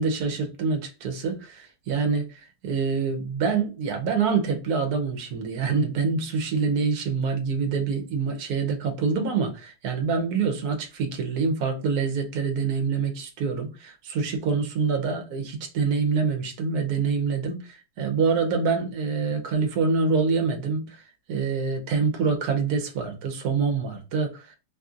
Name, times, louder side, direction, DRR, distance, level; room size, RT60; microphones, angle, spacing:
voice 1, 0.0-21.0 21.3-24.6, right 5 dB, 80° right, 1.2 m, -26 dB
2.9 x 2.6 x 2.4 m
omnidirectional pair, 1.6 m